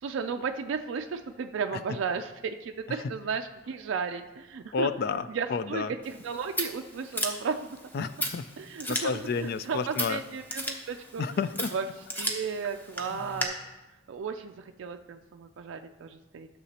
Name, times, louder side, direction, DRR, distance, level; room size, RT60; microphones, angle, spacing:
voice 1, 0.0-4.9 5.3-7.8 8.6-11.2 11.7-11.9 12.2-13.6 14.1-16.5, right 5 dB, 70° right, 6 dB, 0.4 m, -34 dB
voice 2, 4.7-5.9 7.9-8.4 8.9-10.2 11.2-11.7 13.1-13.2, left 5 dB, 50° left, 13 dB, 0.3 m, -30 dB
Scissors, 6.0-13.4, equal, 10° left, 0.8 m, -36 dB
12.5 x 6.7 x 2.9 m, 1.1 s
head